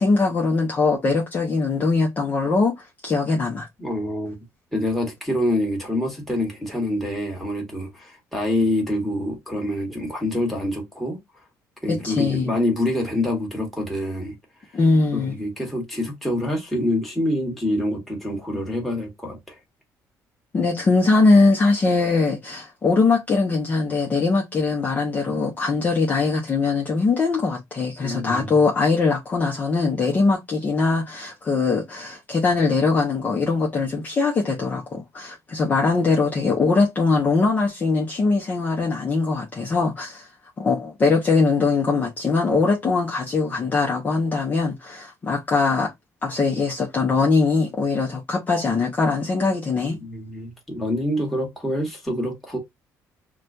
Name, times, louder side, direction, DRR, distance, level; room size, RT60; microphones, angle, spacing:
voice 1, 0.0-3.7 11.9-12.5 14.7-15.3 20.5-40.3 40.6-45.9 46.2-50.0, left 3 dB, 30° left, 0.8 m, -21 dB
voice 2, 3.8-4.4 4.7-11.2 11.8-14.4 15.1-19.6 28.0-28.6 50.0-52.6, left 1 dB, 5° left, 1.5 m, -26 dB
5.9 x 2.3 x 2.5 m
cardioid pair, 145°, 6 cm